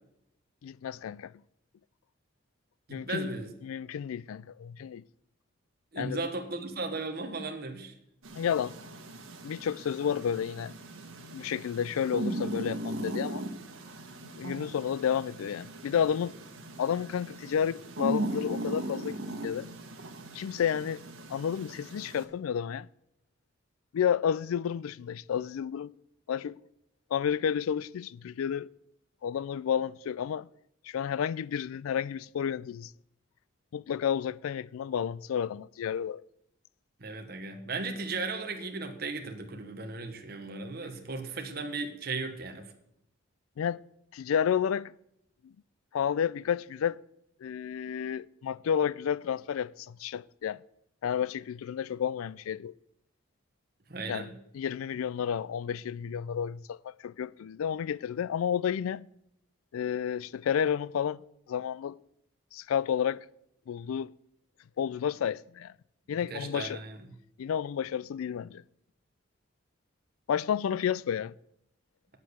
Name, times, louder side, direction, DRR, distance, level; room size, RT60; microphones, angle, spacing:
voice 1, 0.6-1.3 2.9-3.3 3.6-5.0 6.0-6.2 8.3-8.7 9.4-10.7 11.3-13.4 14.3-16.3 16.8-19.2 19.4-19.7 20.3-21.0 21.3-22.9 23.9-25.9 26.3-26.6 27.1-28.7 29.2-30.5 30.8-32.9 33.7-36.2 43.6-43.8 44.1-44.9 45.4-45.5 45.9-47.0 47.4-50.6 51.0-52.7 54.1-54.3 54.5-59.1 59.7-61.2 61.5-62.0 62.5-63.2 63.7-64.1 64.8-65.7 66.1-66.8 67.4-68.6 70.3-71.3, left 8 dB, 90° left, 0.3 m, -31 dB
voice 2, 2.9-3.5 5.9-7.9 37.0-42.7 53.9-54.3 66.1-67.0, right 3 dB, 45° right, 1.1 m, -36 dB
Small Dog Snoring, 8.2-22.3, right 1 dB, 90° right, 1.4 m, -38 dB
8.4 x 7.5 x 8.0 m
head